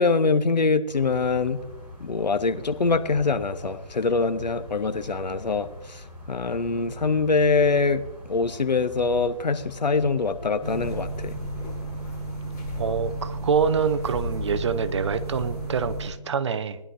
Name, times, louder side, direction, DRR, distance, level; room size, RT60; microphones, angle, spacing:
voice 1, 0.0-1.6 2.0-11.4, left 4 dB, 80° left, 11 dB, 1.0 m, -24 dB
sound 1, 0.9-15.9, left 1 dB, 5° right, 4.3 m, -44 dB
sound 2, 10.6-16.1, right 1 dB, 25° left, 4.7 m, -33 dB
voice 2, 12.8-16.8, right 6 dB, 45° right, 11 dB, 0.7 m, -25 dB
19.5 x 11.0 x 2.7 m, 1.0 s
figure-of-eight pair, 150°, 21 cm